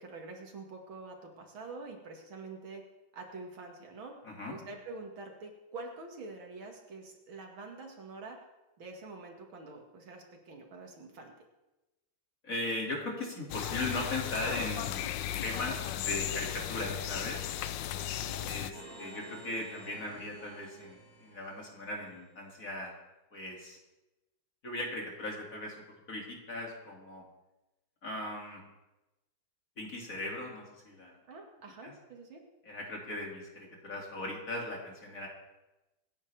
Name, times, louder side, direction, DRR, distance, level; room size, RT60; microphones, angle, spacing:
voice 1, 0.0-2.8 3.1-4.1 4.5-8.4 8.8-11.3 17.9-18.5 31.3-32.4, right 3 dB, 75° right, 2 dB, 2.8 m, -46 dB
voice 2, 4.2-4.6 12.4-15.1 15.4-17.4 18.5-23.0 23.3-23.8 24.6-27.2 28.0-28.6 29.8-31.2 31.8-31.9 32.6-35.3, left 2 dB, 40° left, -1 dB, 2.9 m, -38 dB
sound 1, 13.5-18.7, left 11 dB, 70° left, 1.2 m, -36 dB
sound 2, 18.7-22.0, right 1 dB, 85° left, 4.3 m, -51 dB
25.5 x 9.9 x 3.5 m, 1.0 s
omnidirectional pair, 2.2 m